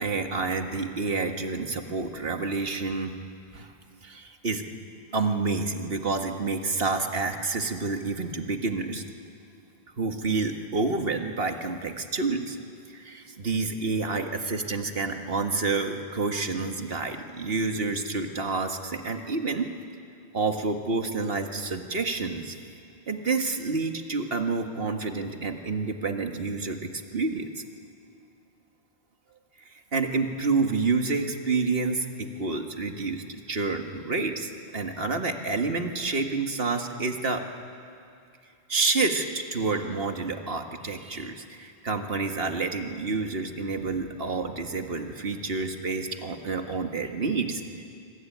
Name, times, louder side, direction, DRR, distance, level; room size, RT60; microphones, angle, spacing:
voice 1, 0.0-3.1 3.5-3.7 4.0-4.6 5.1-9.0 10.0-12.6 12.9-19.7 20.3-22.6 23.1-27.5 29.9-37.4 38.7-47.6, right 3 dB, 65° right, 5 dB, 1.9 m, -29 dB
25.5 x 24.0 x 9.3 m, 2.5 s
omnidirectional pair, 1.1 m